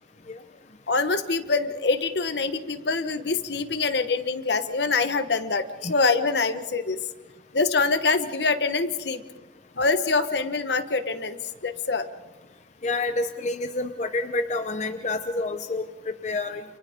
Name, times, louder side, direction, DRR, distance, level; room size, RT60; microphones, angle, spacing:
voice 1, 0.9-7.0 7.5-9.2 9.8-11.4 11.6-12.1, left 4 dB, 65° left, 9 dB, 1.2 m, -25 dB
voice 2, 12.8-16.6, left 2 dB, 40° left, 7 dB, 0.8 m, -28 dB
30.0 x 28.0 x 3.7 m, 1.2 s
head